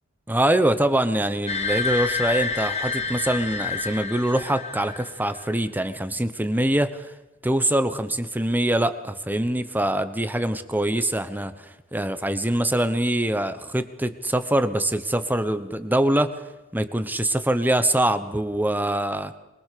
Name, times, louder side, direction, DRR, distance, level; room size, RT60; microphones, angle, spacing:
voice 1, 0.3-7.1 7.4-16.3 16.7-19.3, right 1 dB, 10° right, 11 dB, 1.1 m, -24 dB
sound 1, 1.5-5.3, left 4 dB, 30° left, 3.2 m, -28 dB
23.0 x 21.5 x 6.8 m, 1.0 s
head